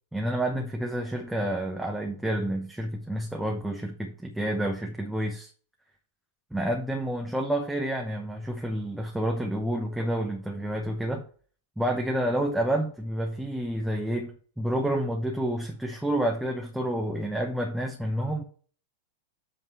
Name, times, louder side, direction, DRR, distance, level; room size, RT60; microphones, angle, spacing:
voice 1, 0.1-5.5 6.5-11.3 11.8-18.4, right 1 dB, 5° right, 1.1 m, -29 dB
8.1 x 3.6 x 6.5 m
figure-of-eight pair, 90°, 0 cm